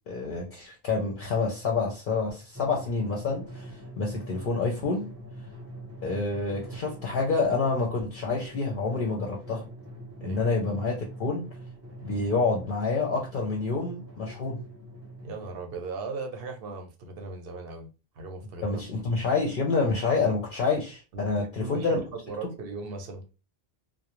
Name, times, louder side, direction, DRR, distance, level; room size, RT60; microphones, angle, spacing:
voice 1, 0.1-5.1 6.0-9.7 10.2-11.4 12.0-14.6 18.6-22.0, left 4 dB, 60° left, 0.7 m, -28 dB
Drum, 2.5-15.5, equal, 15° right, 0.7 m, -43 dB
voice 2, 15.2-17.9 18.2-18.8 21.1-23.2, right 3 dB, 70° right, 0.9 m, -38 dB
2.4 x 2.0 x 2.9 m
omnidirectional pair, 1.0 m